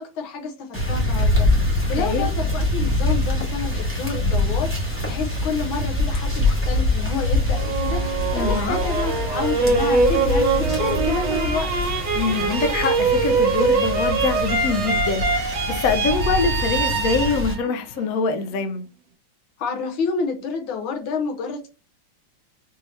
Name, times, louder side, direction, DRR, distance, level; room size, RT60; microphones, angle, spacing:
voice 1, 0.0-11.7 19.6-21.7, left 5 dB, 90° left, 1.7 m, -29 dB
sound 1, 0.7-17.5, left 2 dB, 10° left, 0.7 m, -24 dB
sound 2, 7.5-18.6, right 4 dB, 65° right, 1.4 m, -23 dB
voice 2, 8.3-8.8 12.1-18.9, left 4 dB, 65° left, 0.9 m, -24 dB
4.5 x 2.8 x 3.1 m
omnidirectional pair, 2.2 m